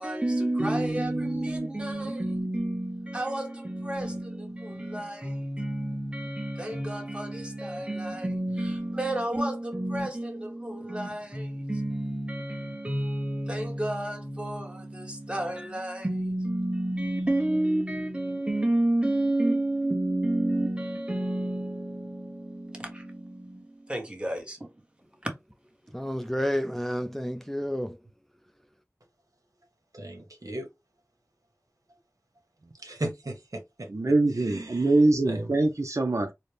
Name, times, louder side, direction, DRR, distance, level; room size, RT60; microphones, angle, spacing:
voice 1, 0.0-24.6, right 1 dB, 20° right, 1.2 m, -30 dB
voice 2, 25.9-28.0, equal, 5° left, 0.4 m, -30 dB
voice 3, 29.9-30.7 32.8-33.9 34.3-35.0 35.2-35.6, right 1 dB, 75° right, 1.1 m, -37 dB
voice 4, 33.9-36.3, right 2 dB, 60° right, 0.6 m, -23 dB
4.1 x 2.1 x 3.3 m
wide cardioid pair, 40°, 6 cm